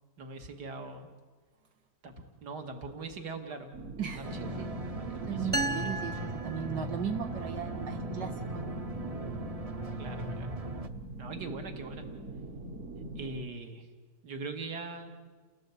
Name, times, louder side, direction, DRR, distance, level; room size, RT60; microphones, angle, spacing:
voice 1, 0.2-1.1 2.0-2.1 2.4-3.7 4.2-4.3 4.5-5.5 10.0-10.5 11.2-12.1 13.2-13.9 14.2-15.1, right 3 dB, 75° right, 5 dB, 2.7 m, -41 dB
sound 1, 3.7-13.4, right 2 dB, 50° right, 1.5 m, -43 dB
sound 2, 4.2-10.9, right 1 dB, 30° right, 0.8 m, -38 dB
voice 2, 5.2-8.8, right 8 dB, 90° right, 2 dB, 2.5 m, -37 dB
sound 3, 5.5-7.3, right 2 dB, 10° right, 0.4 m, -35 dB
29.5 x 17.5 x 8.6 m, 1.4 s
omnidirectional pair, 1.8 m